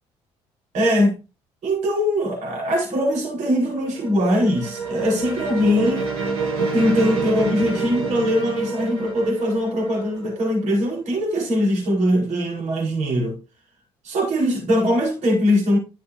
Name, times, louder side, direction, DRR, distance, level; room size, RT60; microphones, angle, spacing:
voice 1, 0.7-1.2 1.6-6.1 6.6-13.4 14.0-15.8, equal, 65° right, 4.5 m, -21 dB
sound 1, 3.3-11.0, right 4 dB, 85° right, 2.8 m, -27 dB
11.5 x 6.5 x 2.7 m
supercardioid pair, 65°, 13 cm